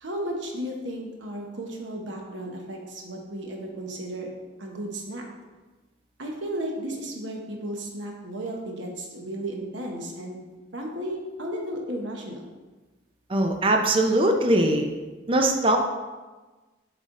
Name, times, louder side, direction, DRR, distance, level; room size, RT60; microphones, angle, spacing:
voice 1, 0.0-4.3 4.6-5.2 6.2-10.4 10.7-12.4, right 1 dB, 75° right, 1 dB, 1.0 m, -34 dB
voice 2, 13.3-14.9 15.3-15.8, right 1 dB, 30° right, 3 dB, 0.5 m, -21 dB
8.2 x 3.4 x 3.7 m, 1.2 s
head